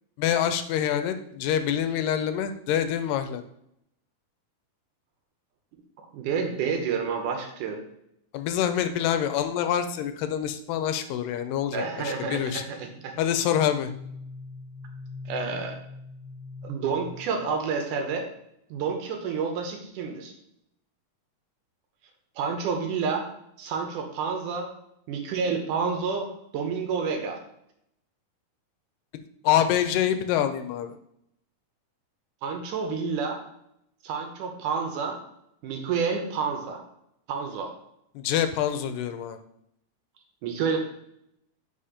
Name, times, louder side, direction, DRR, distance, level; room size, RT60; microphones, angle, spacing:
voice 1, 0.2-3.4 8.3-12.6 13.2-13.9 29.4-30.9 38.2-39.4, left 10 dB, 90° left, 9 dB, 2.2 m, -26 dB
voice 2, 6.0-7.8 11.7-13.1 15.3-15.8 16.6-18.3 18.7-20.3 22.4-23.3 23.6-24.7 25.1-27.4 32.4-33.4 34.0-35.2 35.6-36.8 37.3-37.7 40.4-40.8, right 5 dB, 75° right, 3 dB, 2.3 m, -29 dB
sound 1, 12.8-18.0, left 3 dB, 60° left, 0.9 m, -43 dB
5.4 x 4.3 x 5.0 m, 0.76 s
omnidirectional pair, 3.8 m